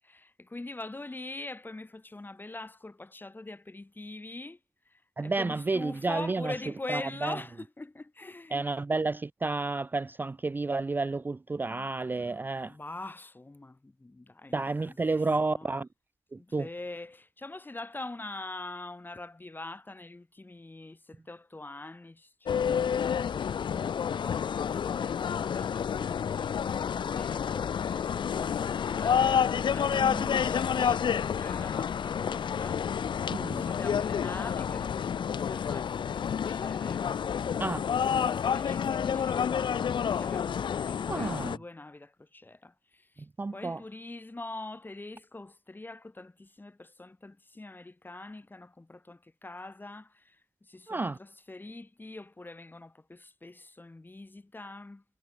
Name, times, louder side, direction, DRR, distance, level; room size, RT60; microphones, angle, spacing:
voice 1, 0.0-4.6 4.8-8.8 11.6-15.0 15.4-15.7 16.4-37.5 37.8-43.3 43.5-55.0, left 2 dB, 25° left, 2.8 m, -44 dB
voice 2, 5.2-6.5 6.9-7.4 8.5-12.8 14.5-15.9 16.3-16.7 33.3-33.6 37.6-37.8 41.1-41.6 43.4-43.8 50.9-51.2, right 3 dB, 25° right, 0.3 m, -31 dB
sound 1, 22.5-41.6, left 7 dB, 75° left, 0.5 m, -29 dB
wide cardioid pair, 95°, 8 cm